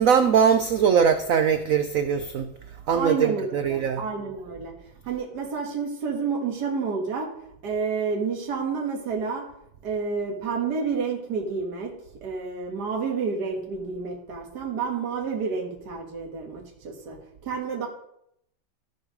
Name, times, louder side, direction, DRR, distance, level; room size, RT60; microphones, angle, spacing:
voice 1, 0.0-2.5 2.9-4.0, right 7 dB, 80° right, 9 dB, 0.7 m, -21 dB
voice 2, 2.9-4.7 5.0-7.3 7.6-9.5 9.8-11.9 12.2-17.9, right 5 dB, 55° right, 0 dB, 2.1 m, -29 dB
14.0 x 4.8 x 5.0 m, 0.74 s
omnidirectional pair, 2.1 m